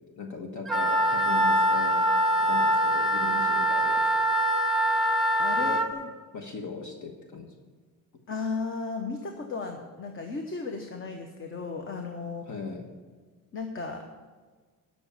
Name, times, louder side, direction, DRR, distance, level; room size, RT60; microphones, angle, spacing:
voice 1, 0.2-2.0 2.4-4.0 5.6-5.8 6.3-7.5 12.5-12.9, left 4 dB, 55° left, 2 dB, 1.4 m, -38 dB
Wind instrument woodwind instrument, 0.7-5.9, right 1 dB, ahead, 0.9 m, -24 dB
voice 2, 5.4-6.1 8.3-12.5 13.5-14.0, left 4 dB, 35° left, 4 dB, 1.0 m, -35 dB
12.5 x 6.2 x 7.1 m, 1.5 s
cardioid pair, 140°, 36 cm